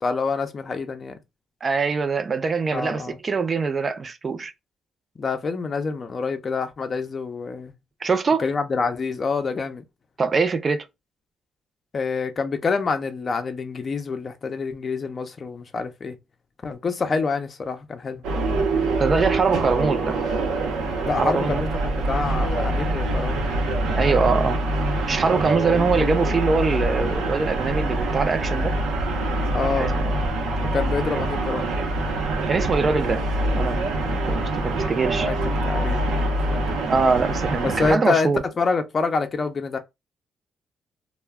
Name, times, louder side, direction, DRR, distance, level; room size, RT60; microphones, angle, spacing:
voice 1, 0.0-1.2 2.7-3.2 5.2-7.7 8.4-9.8 11.9-16.2 16.6-18.2 21.0-23.4 29.5-29.9 30.7-31.7 35.2-35.3 35.6-36.6 37.6-39.8, left 4 dB, 40° left, 0.5 m, -27 dB
voice 2, 1.6-4.5 8.0-8.4 10.2-10.9 19.0-20.2 21.2-21.6 23.9-24.6 25.1-28.7 29.8-30.2 32.5-33.2 33.5-35.3 36.9-38.4, right 4 dB, 35° right, 0.4 m, -23 dB
sound 1, 18.2-37.9, right 2 dB, 85° right, 0.7 m, -25 dB
2.2 x 2.1 x 3.3 m
cardioid pair, 90°, 0 cm